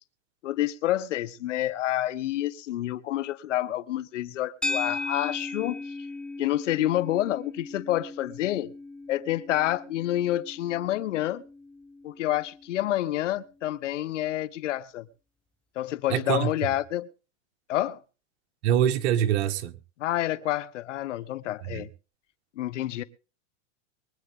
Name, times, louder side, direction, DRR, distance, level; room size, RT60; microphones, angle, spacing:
voice 1, 0.4-5.8 6.4-8.7 9.1-11.4 12.0-15.1 15.8-17.1 17.7-18.0 20.0-21.9 22.6-23.0, left 14 dB, 80° left, 1.2 m, -28 dB
sound 1, 4.6-13.0, left 3 dB, 5° left, 0.6 m, -37 dB
voice 2, 16.1-16.7 18.6-19.7 21.6-21.9, right 10 dB, 65° right, 1.7 m, -25 dB
23.5 x 9.2 x 3.7 m
supercardioid pair, 135°, 36 cm